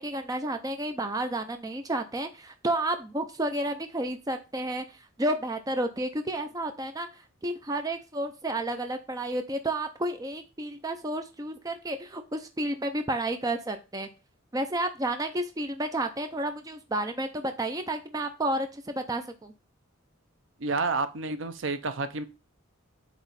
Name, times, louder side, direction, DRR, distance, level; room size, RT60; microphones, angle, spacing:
voice 1, 0.0-4.8 5.2-7.1 7.4-14.1 14.5-19.5, right 1 dB, 15° right, 7 dB, 0.5 m, -31 dB
voice 2, 20.6-22.2, right 3 dB, 65° right, 11 dB, 0.6 m, -29 dB
8.0 x 3.1 x 4.1 m, 0.30 s
head